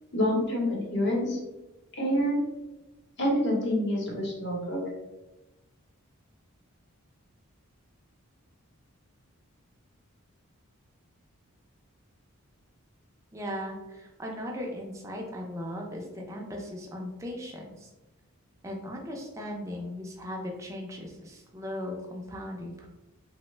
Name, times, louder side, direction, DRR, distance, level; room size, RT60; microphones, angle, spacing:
voice 1, 0.1-1.4 2.0-2.4 3.2-4.8, equal, 50° left, -2 dB, 0.8 m, -27 dB
voice 2, 13.3-17.9 18.6-22.9, left 1 dB, 15° right, -1 dB, 0.4 m, -38 dB
3.1 x 2.1 x 3.1 m, 1.1 s
head